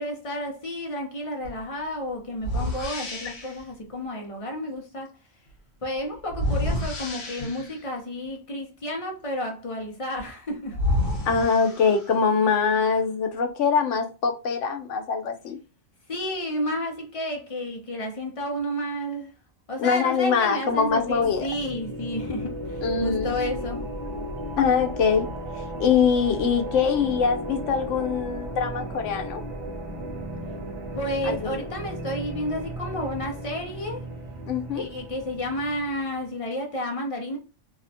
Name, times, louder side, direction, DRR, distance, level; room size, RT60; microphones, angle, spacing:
voice 1, 0.0-5.1 5.8-10.8 16.1-19.3 19.7-23.9 30.9-34.0 34.7-37.4, equal, 45° left, 0.4 m, -31 dB
sound 1, 1.4-1.6 2.4-3.6 6.3-7.9 10.2-10.3 10.7-12.3, left 1 dB, 65° left, 1.1 m, -29 dB
voice 2, 11.3-15.6 19.8-21.5 22.8-23.3 24.6-25.3 25.5-29.4 31.2-31.6 34.5-34.8, left 6 dB, 80° left, 0.9 m, -23 dB
sound 2, 20.8-36.2, equal, 50° right, 0.5 m, -35 dB
2.7 x 2.1 x 2.7 m
omnidirectional pair, 1.2 m